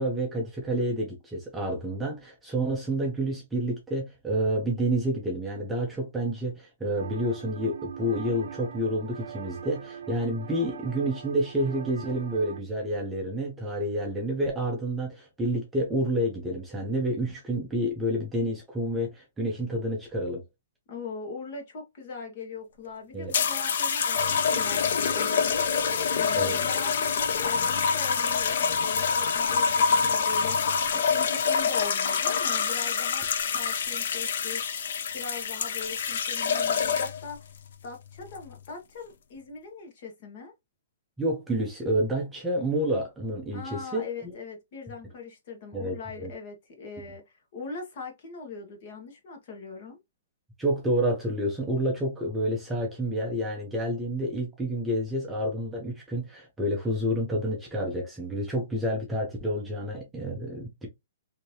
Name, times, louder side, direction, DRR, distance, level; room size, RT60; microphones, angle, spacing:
voice 1, 0.0-20.4 23.1-23.3 26.4-26.6 41.2-44.0 45.7-46.3 50.6-60.9, right 1 dB, 5° right, 0.6 m, -29 dB
sound 1, 7.0-12.6, right 8 dB, 55° right, 0.4 m, -41 dB
voice 2, 20.9-34.9 35.1-37.5 37.8-40.5 43.5-47.2 47.5-50.0, left 4 dB, 35° left, 1.2 m, -41 dB
sound 2, 23.3-37.3 38.2-38.5, left 6 dB, 55° left, 0.5 m, -26 dB
3.2 x 2.8 x 2.7 m
hypercardioid pair, 170°, 0 cm